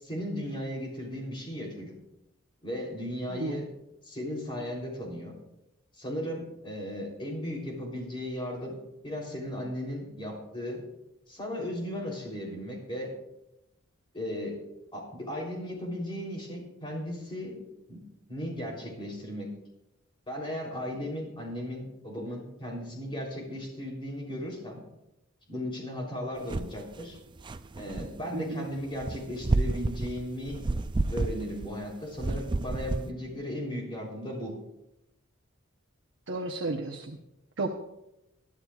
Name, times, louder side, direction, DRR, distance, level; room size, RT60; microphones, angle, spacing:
voice 1, 0.0-1.9 2.6-3.7 4.0-5.3 6.0-8.7 9.0-10.8 11.3-13.1 14.1-14.6 14.9-17.6 17.9-18.0 18.3-19.5 20.3-24.8 25.5-27.2 27.8-30.6 31.1-34.5, equal, 25° left, -1 dB, 3.4 m, -36 dB
voice 2, 3.3-3.6 28.3-28.7 36.3-37.2 37.6-37.7, right 2 dB, 60° right, 2 dB, 0.9 m, -33 dB
sound 1, 26.5-26.8 27.2-28.2 29.0-31.8 32.2-33.1, right 2 dB, 20° right, 0.3 m, -30 dB
21.0 x 11.5 x 2.4 m, 0.90 s
head